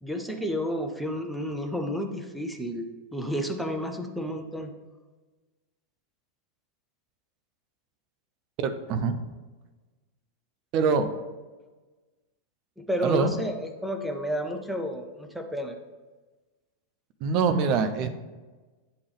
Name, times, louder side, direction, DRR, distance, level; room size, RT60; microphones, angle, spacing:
voice 1, 0.0-4.7 12.8-15.8, equal, ahead, 4 dB, 0.7 m, -31 dB
voice 2, 8.6-9.2 10.7-11.1 13.0-13.3 17.2-18.1, right 5 dB, 40° right, 9 dB, 0.6 m, -24 dB
9.6 x 3.4 x 3.4 m, 1.3 s
figure-of-eight pair, 90°, 0 cm